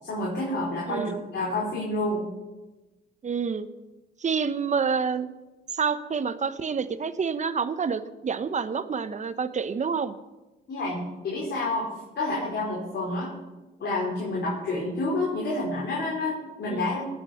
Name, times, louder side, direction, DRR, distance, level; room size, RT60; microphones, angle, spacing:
voice 1, 0.0-2.2 10.7-11.9 12.1-13.4 13.8-17.1, left 2 dB, 60° left, -5 dB, 4.6 m, -29 dB
voice 2, 0.9-1.2 3.2-3.7 4.2-5.3 5.7-10.1 16.7-17.0, right 6 dB, 35° right, 12 dB, 1.0 m, -28 dB
19.0 x 7.5 x 6.5 m, 1.1 s
cardioid pair, 90°, 20 cm